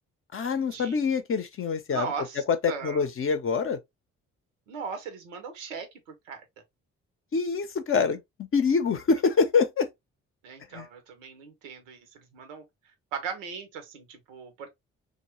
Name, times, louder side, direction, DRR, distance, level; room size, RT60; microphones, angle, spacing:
voice 1, 0.3-2.1 2.4-3.8 7.3-9.9 10.7-10.9, left 5 dB, 35° left, 0.6 m, -25 dB
voice 2, 1.9-3.0 4.7-6.4 10.4-12.6 13.1-14.7, right 6 dB, 80° right, 0.7 m, -38 dB
2.9 x 2.1 x 3.0 m
figure-of-eight pair, 40°, 38 cm